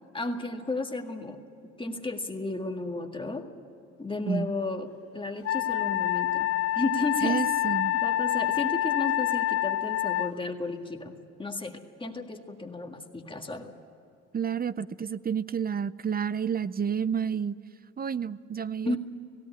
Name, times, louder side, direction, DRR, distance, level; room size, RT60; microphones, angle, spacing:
voice 1, 0.1-1.4 1.8-3.5 4.0-6.5 6.7-7.4 8.0-13.7 18.8-19.0, left 2 dB, 15° left, 4 dB, 1.8 m, -33 dB
Wind instrument woodwind instrument, 5.5-10.3, left 13 dB, 50° left, 0.5 m, -27 dB
voice 2, 7.2-7.9 14.3-17.6 18.0-19.0, right 7 dB, 30° right, 17 dB, 0.5 m, -30 dB
17.5 x 17.0 x 9.8 m, 2.7 s
cardioid pair, 90°, 30 cm